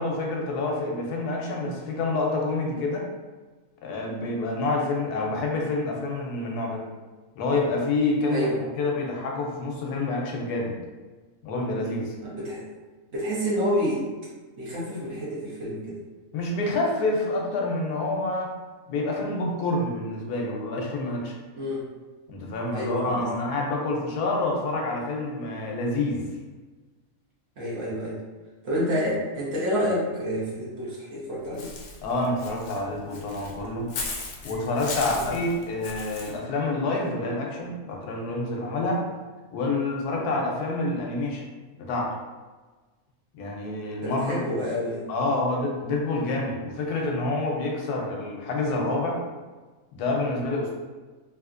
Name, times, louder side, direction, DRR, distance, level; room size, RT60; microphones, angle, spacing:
voice 1, 0.0-3.1 3.8-6.8 7.4-8.5 8.8-10.8 11.4-12.1 16.3-18.5 18.9-21.4 22.3-26.2 32.0-33.9 34.4-39.0 39.5-41.4 41.8-42.1 43.3-44.4 45.1-49.2 49.9-50.7, left 2 dB, 90° left, -1 dB, 1.2 m, -27 dB
voice 2, 12.2-12.6 13.1-14.0 14.6-16.0 21.6-21.8 22.7-23.3 27.6-28.2 28.6-31.7 35.1-35.3 40.1-40.3 44.0-45.0, equal, 55° right, -7 dB, 1.2 m, -28 dB
Walk footsteps / Bird, 31.6-36.3, left 3 dB, 65° left, 0.8 m, -37 dB
3.4 x 2.7 x 2.5 m, 1.3 s
omnidirectional pair, 1.6 m